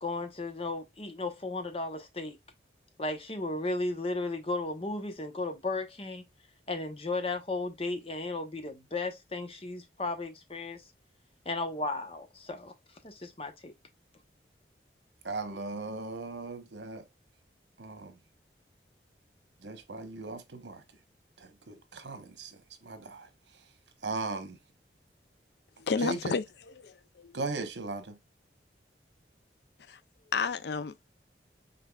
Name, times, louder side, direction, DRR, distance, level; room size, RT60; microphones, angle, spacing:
voice 1, 0.0-2.4 3.0-6.2 6.7-10.8 11.4-12.7 13.0-13.7, left 2 dB, 30° left, 0.9 m, -35 dB
voice 2, 15.2-17.0 17.8-18.1 19.6-20.8 21.4-23.3 24.0-24.6 26.0-26.3 27.3-28.2, right 3 dB, 85° right, 1.1 m, -38 dB
voice 3, 25.8-26.4 26.8-26.9 27.2-27.3 29.9-30.0 30.3-31.0, left 5 dB, 70° left, 0.4 m, -30 dB
5.6 x 3.7 x 2.3 m
head